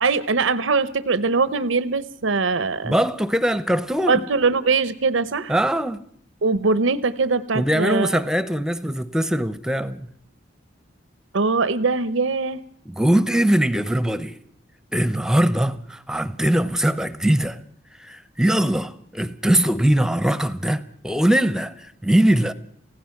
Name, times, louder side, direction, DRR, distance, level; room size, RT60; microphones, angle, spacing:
voice 1, 0.0-2.9 4.1-5.5 6.4-8.2 11.3-12.6, right 4 dB, 80° right, 0.8 m, -21 dB
voice 2, 2.8-4.2 5.5-6.0 7.5-10.1 12.9-14.4 14.9-17.6 18.0-22.5, right 1 dB, 5° right, 0.7 m, -21 dB
29.0 x 16.5 x 5.9 m
head